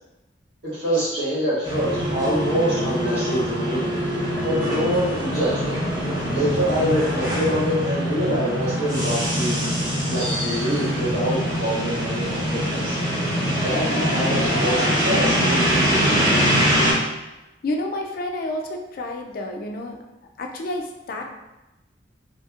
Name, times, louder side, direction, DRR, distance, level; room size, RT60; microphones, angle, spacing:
voice 1, 0.6-3.9 4.4-5.8 6.3-9.7 10.0-13.0 13.6-16.4, equal, 60° right, -8 dB, 1.2 m, -25 dB
sound 1, 1.6-16.9, equal, 20° right, 0.8 m, -23 dB
voice 2, 17.6-20.0 20.4-21.3, left 1 dB, 50° left, 2 dB, 0.3 m, -29 dB
2.8 x 2.7 x 2.3 m, 1.0 s
head